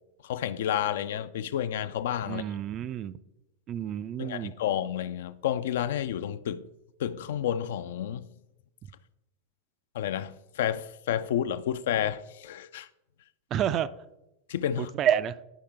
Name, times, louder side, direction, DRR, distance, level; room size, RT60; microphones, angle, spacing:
voice 1, 0.2-2.4 4.2-6.6 7.0-8.3 9.9-12.9 14.5-14.9, left 10 dB, 55° left, 0.3 m, -30 dB
voice 2, 2.3-3.2 3.7-4.5 13.5-13.9 14.8-15.4, right 10 dB, 30° right, 0.3 m, -29 dB
10.0 x 4.9 x 3.3 m
figure-of-eight pair, 90°, 0 cm